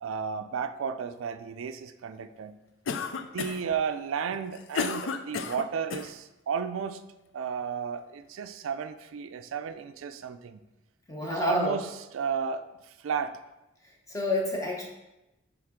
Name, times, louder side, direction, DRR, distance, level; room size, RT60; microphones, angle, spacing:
voice 1, 0.0-2.6 3.3-7.0 7.3-10.6 11.2-13.4, right 6 dB, 90° right, 9 dB, 0.4 m, -33 dB
Cough, 2.9-3.7 4.3-6.1, left 5 dB, 75° left, 0.4 m, -32 dB
voice 2, 11.1-11.8 14.1-14.8, left 2 dB, 15° left, -1 dB, 0.9 m, -28 dB
7.8 x 3.5 x 3.7 m, 0.98 s
head